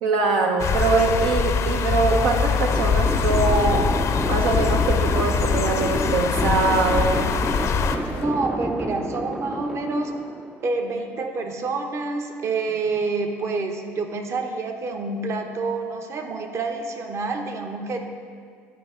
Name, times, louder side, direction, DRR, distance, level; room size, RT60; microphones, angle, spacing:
voice 1, 0.0-3.9 4.3-7.3, right 3 dB, 75° right, 2 dB, 0.7 m, -22 dB
sound 1, 0.6-8.0, left 6 dB, 45° left, 0.6 m, -23 dB
sound 2, 2.2-8.3, left 4 dB, 90° left, 0.6 m, -40 dB
sound 3, 2.7-11.0, right 1 dB, 5° right, 0.4 m, -30 dB
voice 2, 8.1-10.1 10.6-18.0, right 3 dB, 45° right, 5 dB, 0.9 m, -28 dB
11.5 x 5.0 x 3.7 m, 2.1 s
supercardioid pair, 85°, 7 cm